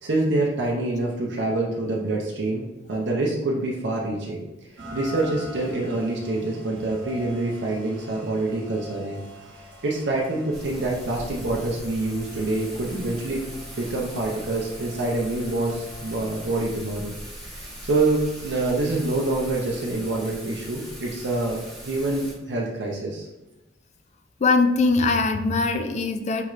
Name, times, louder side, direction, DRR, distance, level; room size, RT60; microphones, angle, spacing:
voice 1, 0.0-4.4 4.9-9.2 9.8-13.4 13.8-17.1 17.4-23.3, right 2 dB, 65° right, -2 dB, 0.6 m, -26 dB
Rain, 4.8-16.7, left 1 dB, 85° right, 1.1 m, -44 dB
Thunder / Rain, 10.5-22.3, right 1 dB, ahead, 0.9 m, -40 dB
voice 2, 24.4-26.4, left 3 dB, 40° left, 7 dB, 0.4 m, -21 dB
5.6 x 3.1 x 2.4 m, 1.0 s
head